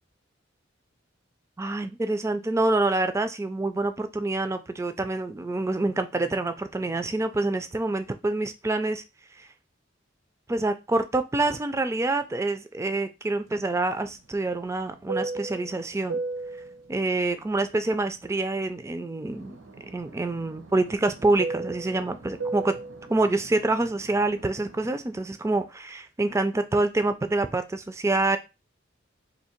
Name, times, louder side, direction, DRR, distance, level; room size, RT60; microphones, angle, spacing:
voice 1, 1.6-9.0 9.4-9.5 10.5-16.2 16.9-19.6 19.9-22.8 23.1-28.4, right 2 dB, 15° right, 9 dB, 0.3 m, -26 dB
Fixed-wing aircraft airplane, 13.5-18.9 19.2-25.0, right 3 dB, 75° right, 0.8 m, -37 dB
2.7 x 2.7 x 4.3 m, 0.26 s
head